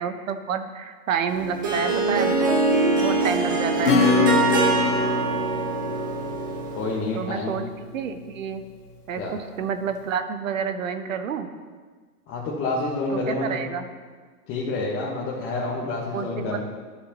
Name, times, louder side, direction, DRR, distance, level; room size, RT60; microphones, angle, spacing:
voice 1, 0.0-2.4 2.9-4.4 7.1-8.6 9.1-11.5 13.1-13.9 16.1-16.6, right 7 dB, 55° right, 9 dB, 1.0 m, -29 dB
Harp, 1.3-7.1, right 3 dB, 15° right, 0.4 m, -24 dB
Acoustic guitar / Strum, 3.8-8.1, left 4 dB, 70° left, 1.6 m, -24 dB
voice 2, 6.7-7.6 9.2-9.3 12.3-13.6 14.5-16.6, left 3 dB, 25° left, -6 dB, 1.4 m, -28 dB
13.0 x 6.5 x 3.0 m, 1.5 s
figure-of-eight pair, 120°, 47 cm